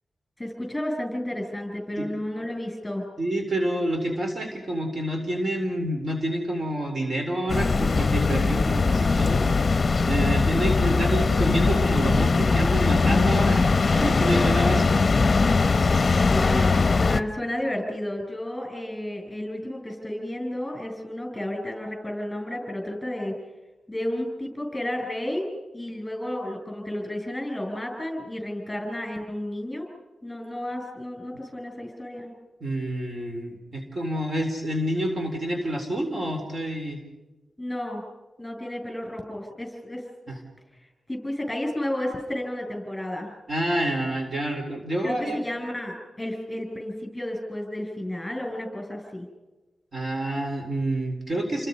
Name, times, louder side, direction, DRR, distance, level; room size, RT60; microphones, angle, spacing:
voice 1, 0.4-3.1 16.3-23.3 23.9-25.5 25.7-29.9 30.2-32.3 37.6-38.0 38.4-40.0 41.1-43.3 45.0-49.3, left 1 dB, 10° left, 3 dB, 7.8 m, -32 dB
voice 2, 3.2-15.0 32.6-37.0 40.3-40.4 43.5-45.4 49.9-51.7, right 1 dB, 40° right, 2 dB, 4.0 m, -28 dB
sound 1, 7.5-17.2, left 4 dB, 35° left, 0.9 m, -21 dB
29.5 x 23.0 x 5.4 m, 1.1 s
wide cardioid pair, 115°, 0 cm